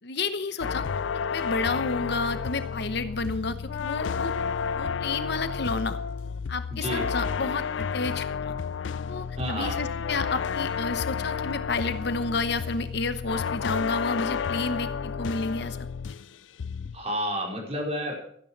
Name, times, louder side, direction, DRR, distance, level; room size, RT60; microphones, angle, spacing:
voice 1, 0.0-0.9 1.3-4.3 4.7-6.0 6.5-8.5 9.1-15.8, left 3 dB, 60° left, 10 dB, 1.0 m, -31 dB
sound 1, 0.6-16.3 16.6-17.0, left 6 dB, 75° left, 0.4 m, -31 dB
voice 2, 6.7-7.1 9.4-9.8 16.9-18.1, equal, 35° right, -1 dB, 4.8 m, -30 dB
14.5 x 10.5 x 5.9 m, 0.66 s
head